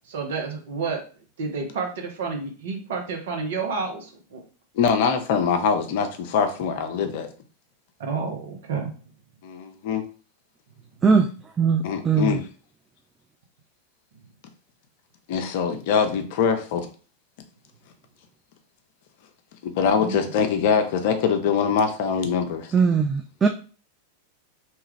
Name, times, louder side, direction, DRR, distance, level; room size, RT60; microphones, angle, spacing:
voice 1, 0.1-1.0 1.4-4.4 8.0-9.0 19.9-20.2, right 4 dB, 55° right, 2 dB, 0.8 m, -30 dB
voice 2, 4.8-7.3 9.4-10.0 11.8-12.4 15.3-16.9 19.6-22.7, left 6 dB, 50° left, 7 dB, 0.5 m, -23 dB
voice 3, 11.6-12.4 22.7-23.5, right 5 dB, 20° right, 5 dB, 0.3 m, -20 dB
2.9 x 2.3 x 3.2 m, 0.38 s
figure-of-eight pair, 90°, 0 cm